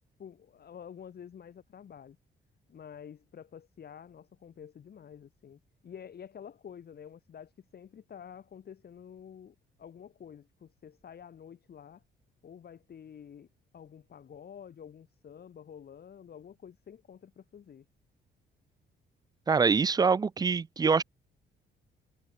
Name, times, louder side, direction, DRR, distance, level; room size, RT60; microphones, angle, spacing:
voice 1, 0.2-2.2 2.7-12.0 12.4-13.5 13.7-17.9, left 8 dB, 50° left, 2.7 m, -49 dB
voice 2, 19.5-21.0, right 5 dB, 20° right, 0.3 m, -24 dB
cardioid pair, 90°, 20 cm